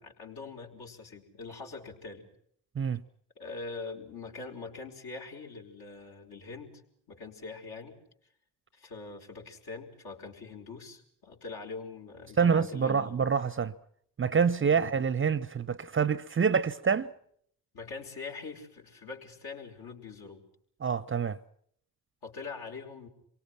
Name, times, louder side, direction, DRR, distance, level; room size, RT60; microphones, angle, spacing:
voice 1, 0.0-2.3 3.3-6.8 7.1-8.0 8.7-13.2 14.7-14.9 17.7-20.4 22.2-23.1, left 4 dB, 55° left, 5.1 m, -43 dB
voice 2, 12.4-13.7 14.2-17.1 20.8-21.4, right 6 dB, 25° right, 0.9 m, -26 dB
28.5 x 23.5 x 6.0 m
figure-of-eight pair, 45°, 46 cm